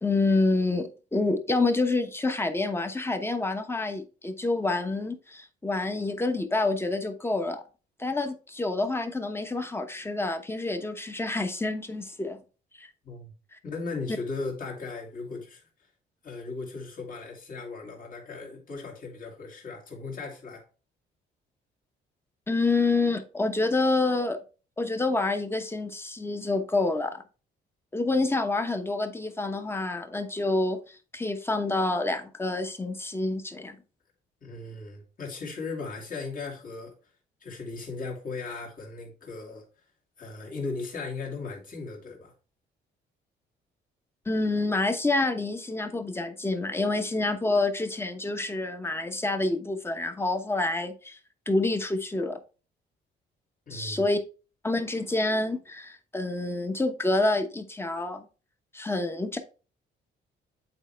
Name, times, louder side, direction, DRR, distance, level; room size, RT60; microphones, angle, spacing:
voice 1, 0.0-7.6 8.0-12.4 12.8-12.9 13.5-13.6 22.5-24.4 24.8-27.2 27.9-33.8 44.3-51.2 51.5-52.4 53.7-54.2 54.6-58.3 58.7-59.4, left 2 dB, 10° left, 1.0 m, -27 dB
voice 2, 13.6-15.6 16.2-20.6 34.4-36.9 37.4-39.6 40.2-42.3 53.7-54.1, left 3 dB, 45° left, 2.2 m, -37 dB
8.1 x 4.2 x 3.3 m
cardioid pair, 90°, 20 cm